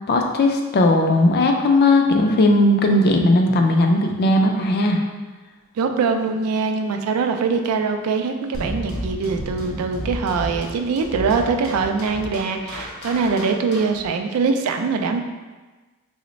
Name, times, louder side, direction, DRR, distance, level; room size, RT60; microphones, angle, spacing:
voice 1, 0.1-5.0, left 2 dB, 45° left, 3 dB, 0.3 m, -17 dB
voice 2, 5.8-15.2, right 4 dB, 90° right, 5 dB, 0.3 m, -22 dB
sound 1, 8.5-14.1, equal, 75° left, 0.8 m, -32 dB
3.0 x 2.1 x 3.9 m, 1.3 s
head